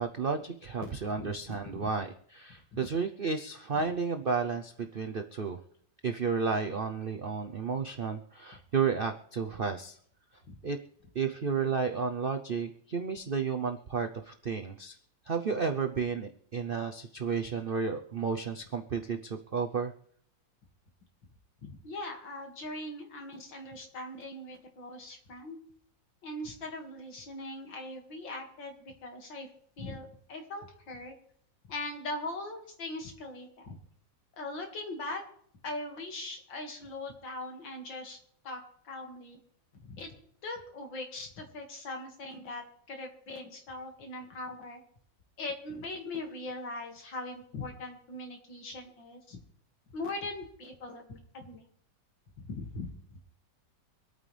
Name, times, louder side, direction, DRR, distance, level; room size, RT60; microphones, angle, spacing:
voice 1, 0.0-5.6 6.0-10.0 10.6-10.8 11.1-15.0 15.3-19.9, right 5 dB, 65° right, 5 dB, 0.5 m, -32 dB
voice 2, 0.8-1.9 10.5-10.6 21.6-25.6 26.2-29.5 29.8-31.1 31.7-33.8 34.4-35.2 35.6-38.2 38.4-39.4 39.8-40.1 40.4-44.8 45.4-49.4 49.9-51.6 52.4-53.2, left 2 dB, 80° left, 3 dB, 2.8 m, -40 dB
25.5 x 9.1 x 3.4 m, 0.65 s
omnidirectional pair, 2.0 m